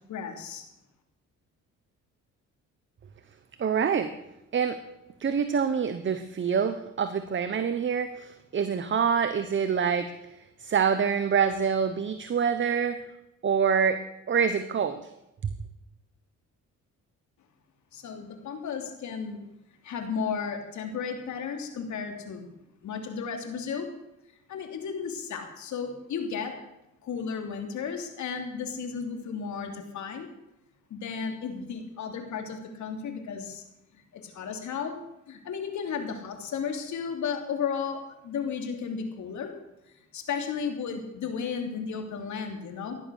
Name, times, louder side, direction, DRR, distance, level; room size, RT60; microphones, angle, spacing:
voice 1, 0.1-0.6 17.9-19.4 19.8-22.5 22.8-23.9 24.5-26.5 27.0-30.3 30.9-33.6 34.1-35.0 35.3-39.5 40.1-43.0, left 6 dB, 70° left, 4 dB, 3.1 m, -34 dB
voice 2, 3.6-4.1 4.5-4.8 5.2-13.0 13.4-15.1, right 7 dB, 40° right, 11 dB, 1.0 m, -26 dB
16.0 x 11.5 x 6.5 m, 0.90 s
cardioid pair, 90°, 30 cm